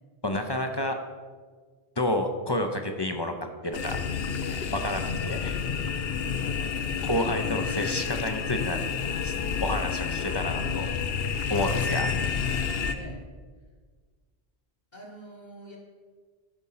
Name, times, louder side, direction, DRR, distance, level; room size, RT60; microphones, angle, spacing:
voice 1, 0.2-1.0 2.0-3.3 3.6-4.0 4.7-5.6 7.0-8.8 9.2-9.3 9.6-10.9 11.5-12.1, left 1 dB, 25° left, 5 dB, 0.7 m, -29 dB
sound 1, 3.7-12.9, left 6 dB, 70° left, 0.9 m, -29 dB
voice 2, 6.3-7.1 12.9-13.2 14.9-15.8, equal, 45° left, -2 dB, 1.5 m, -44 dB
12.5 x 5.3 x 5.7 m, 1.5 s
omnidirectional pair, 1.1 m